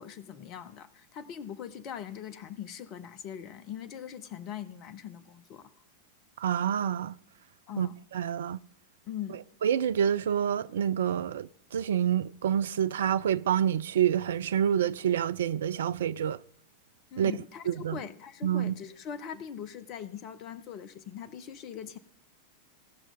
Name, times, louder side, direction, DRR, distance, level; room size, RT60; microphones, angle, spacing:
voice 1, 0.0-5.6 7.7-8.0 9.1-9.4 17.1-22.0, left 9 dB, 40° left, 0.9 m, -41 dB
voice 2, 6.4-7.1 7.8-8.6 9.6-16.4 17.2-17.3 17.7-18.0 18.4-18.8, right 9 dB, 60° right, 0.4 m, -27 dB
18.0 x 6.1 x 5.3 m
figure-of-eight pair, 90°, 0 cm